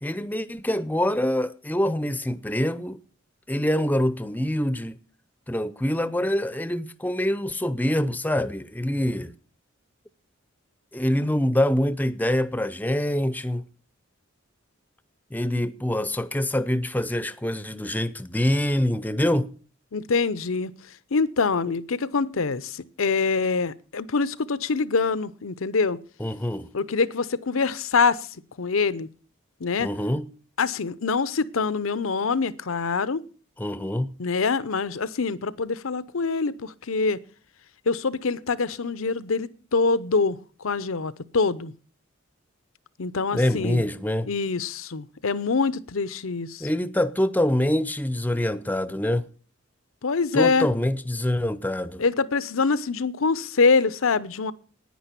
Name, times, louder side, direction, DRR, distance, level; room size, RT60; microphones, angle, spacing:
voice 1, 0.0-3.0 3.5-5.0 5.5-9.3 10.9-13.6 15.3-19.5 26.2-26.7 29.8-30.3 33.6-34.1 43.3-44.3 46.6-49.3 50.3-52.0, left 1 dB, 10° left, 0.6 m, -25 dB
voice 2, 19.9-20.7 21.1-26.0 26.7-28.3 28.6-29.1 29.6-29.9 30.6-33.2 34.2-37.2 37.9-41.7 43.0-43.8 44.3-46.7 50.0-50.7 52.0-54.5, left 4 dB, 80° left, 0.7 m, -25 dB
10.5 x 9.8 x 8.3 m
head